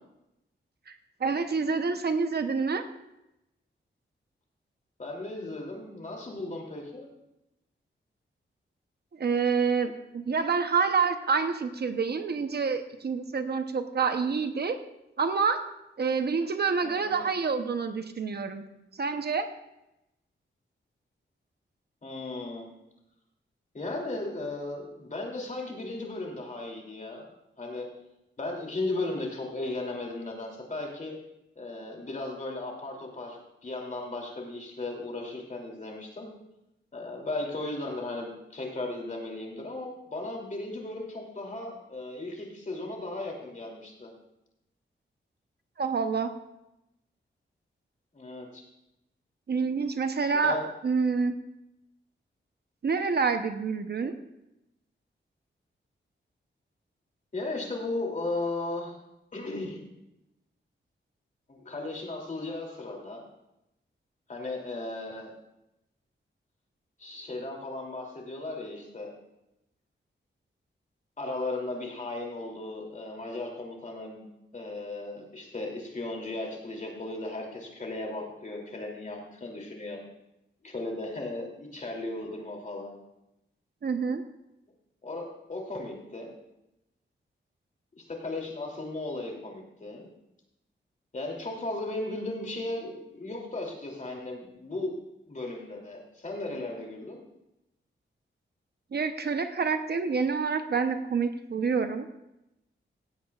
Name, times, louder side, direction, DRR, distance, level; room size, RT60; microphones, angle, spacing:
voice 1, 0.9-2.9 9.2-14.8 15.2-15.6 16.0-18.6 19.0-19.5 45.8-46.3 49.5-50.6 50.8-51.3 52.8-54.1 83.8-84.2 98.9-102.1, right 5 dB, 55° right, 8 dB, 0.8 m, -27 dB
voice 2, 5.0-7.1 16.8-17.3 22.0-22.7 23.7-27.3 27.6-27.9 28.4-31.2 31.6-36.3 36.9-44.1 48.1-48.6 50.4-50.7 57.3-59.0 59.3-59.8 61.5-63.2 64.3-65.3 67.0-69.1 71.2-74.3 74.5-80.0 80.6-82.9 85.0-86.3 88.0-90.1 91.1-94.9 95.3-97.2, left 2 dB, 40° left, -1 dB, 2.9 m, -36 dB
16.5 x 16.0 x 2.4 m, 0.90 s
wide cardioid pair, 140°, 20 cm